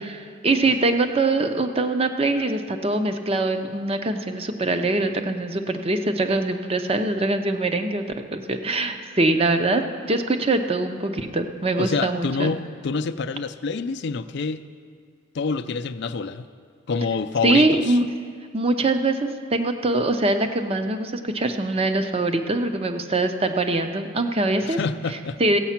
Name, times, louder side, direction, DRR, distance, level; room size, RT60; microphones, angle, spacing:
voice 1, 0.4-8.0 8.3-9.8 10.1-12.5 17.4-18.1 18.5-24.8 25.4-25.6, right 2 dB, 25° right, 8 dB, 0.6 m, -23 dB
voice 2, 11.7-14.6 15.3-16.4 16.9-18.0 24.6-25.4, left 4 dB, 55° left, 11 dB, 0.4 m, -27 dB
15.5 x 8.2 x 5.8 m, 2.1 s
head